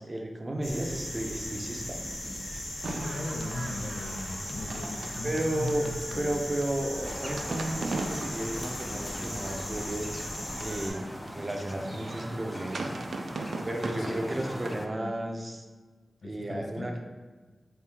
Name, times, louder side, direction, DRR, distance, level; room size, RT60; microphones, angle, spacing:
voice 1, 0.0-2.0 5.2-5.8 6.2-10.1 10.6-12.9 13.6-15.6 16.2-17.0, right 1 dB, 35° right, 2 dB, 0.6 m, -33 dB
sound 1, 0.6-10.9, left 1 dB, 70° left, 1.5 m, -38 dB
voice 2, 2.5-6.3 13.9-14.6 14.8-15.1 16.2-17.0, left 2 dB, 85° left, 2 dB, 0.5 m, -38 dB
sound 2, 2.8-14.7, right 3 dB, 80° right, 0.3 m, -40 dB
sound 3, 7.0-14.9, left 1 dB, 20° left, 0.4 m, -41 dB
4.5 x 2.8 x 3.4 m, 1.4 s
wide cardioid pair, 95°, 0 cm